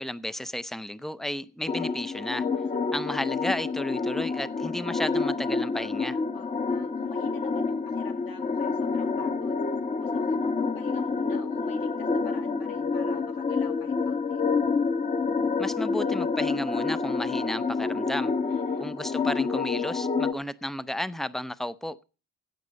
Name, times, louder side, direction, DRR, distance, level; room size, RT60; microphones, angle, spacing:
voice 1, 0.0-2.5 2.9-6.2 15.6-18.3 18.8-22.0, left 1 dB, ahead, 0.5 m, -33 dB
sound 1, 1.7-20.3, left 4 dB, 20° left, 0.9 m, -28 dB
voice 2, 2.5-3.2 6.3-14.4 18.5-18.9, left 6 dB, 85° left, 2.4 m, -49 dB
16.0 x 6.6 x 5.2 m
cardioid pair, 110°, 34 cm